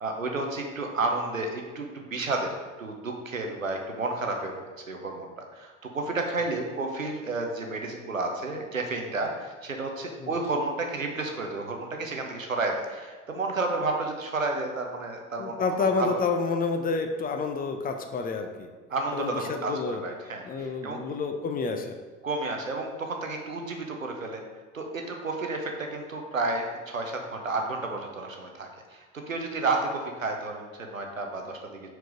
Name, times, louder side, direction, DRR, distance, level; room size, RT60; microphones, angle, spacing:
voice 1, 0.0-4.6 4.9-16.2 18.9-21.0 22.2-24.4 24.7-31.9, right 3 dB, 90° right, 3 dB, 0.8 m, -31 dB
voice 2, 15.4-18.7 19.1-20.0 20.4-21.9, left 4 dB, 25° left, 5 dB, 0.6 m, -29 dB
4.7 x 4.5 x 5.1 m, 1.4 s
figure-of-eight pair, 70°, 39 cm